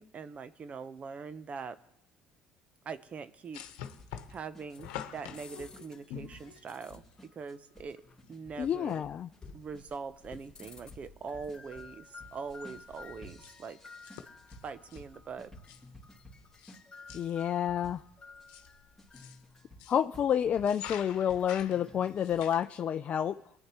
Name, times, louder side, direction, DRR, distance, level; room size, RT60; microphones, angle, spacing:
voice 1, 0.0-1.8 2.8-3.6 4.3-7.0 7.3-8.0 8.3-9.1 9.5-13.8 14.6-15.5, right 5 dB, 40° right, 13 dB, 0.8 m, -42 dB
sound 1, 3.5-7.1 8.3-8.4 8.6-8.7 9.4-9.8 10.1-11.0 11.3-11.6 11.8-16.8 17.1-17.5 18.2-20.1 20.5-22.7, left 10 dB, 80° left, 1.0 m, -47 dB
sound 2, 4.0-18.5 19.0-22.4, left 1 dB, ahead, 2.6 m, -55 dB
sound 3, 4.7-19.8 20.9-22.6, left 4 dB, 25° left, 2.7 m, -54 dB
voice 2, 8.6-9.3 17.1-18.0 19.9-23.4, left 9 dB, 45° left, 8 dB, 0.4 m, -29 dB
21.0 x 9.9 x 3.0 m, 0.84 s
supercardioid pair, 70°, 3 cm